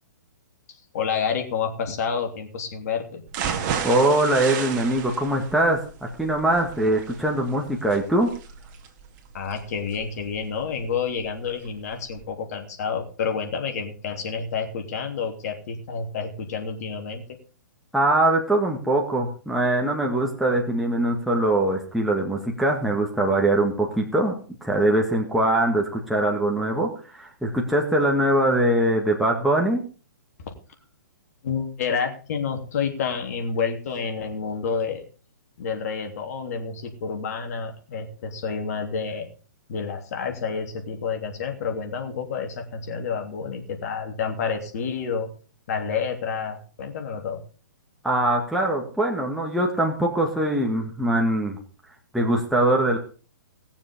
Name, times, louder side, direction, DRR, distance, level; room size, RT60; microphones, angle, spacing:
voice 1, 0.9-3.2 9.3-17.2 30.4-30.5 31.4-35.0 35.6-39.3 39.7-45.3 45.7-47.4, left 6 dB, 55° left, 4 dB, 3.2 m, -29 dB
sound 1, 3.3-11.2 11.6-11.7 12.1-12.2, right 7 dB, 40° right, 2.1 m, -33 dB
voice 2, 3.8-5.8 6.2-8.3 17.9-29.8 48.0-51.6 52.1-53.0, right 1 dB, ahead, -1 dB, 2.0 m, -22 dB
19.5 x 7.2 x 5.3 m, 0.38 s
hypercardioid pair, 135°, 10 cm